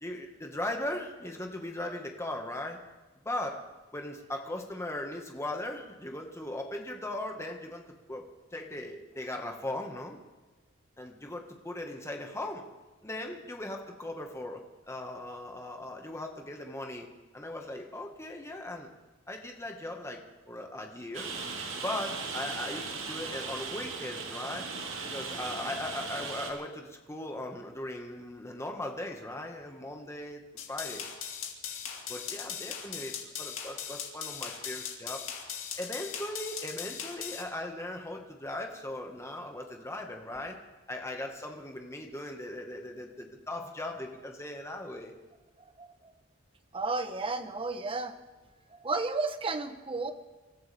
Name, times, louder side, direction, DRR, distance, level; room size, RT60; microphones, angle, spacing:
voice 1, 0.0-2.8 3.2-3.6 3.9-8.3 8.5-10.2 11.0-12.6 13.0-17.1 17.3-18.9 19.3-20.2 20.5-21.3 21.8-24.7 25.1-30.4 30.7-31.0 32.1-35.2 35.8-40.6 40.9-45.1, left 1 dB, 15° left, 2 dB, 1.8 m, -38 dB
Rain, 21.1-26.5, right 4 dB, 70° right, 2.5 m, -38 dB
sound 1, 30.6-37.4, left 8 dB, 70° left, 2.6 m, -39 dB
voice 2, 46.7-48.1 48.8-50.1, right 3 dB, 25° right, 8 dB, 1.1 m, -32 dB
27.5 x 14.0 x 3.6 m, 1.2 s
head